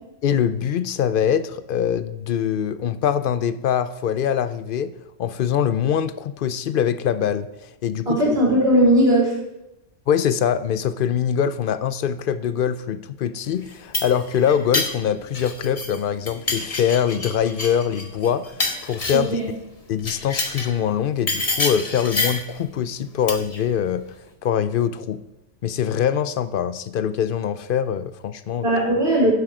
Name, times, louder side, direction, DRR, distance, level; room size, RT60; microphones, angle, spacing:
voice 1, 0.2-4.9 5.2-7.5 7.8-8.2 10.1-18.6 18.8-19.4 19.9-24.1 24.4-25.2 25.6-28.7, left 8 dB, 60° left, 14 dB, 0.6 m, -23 dB
voice 2, 8.0-9.4 19.1-19.5 28.6-29.3, right 1 dB, 45° right, -4 dB, 4.9 m, -18 dB
sound 1, 13.6-16.0 16.3-19.4 20.0-20.7 21.3-22.5 23.3-23.6, left 2 dB, 30° left, 1.2 m, -27 dB
10.5 x 7.7 x 4.9 m, 0.94 s
omnidirectional pair, 1.3 m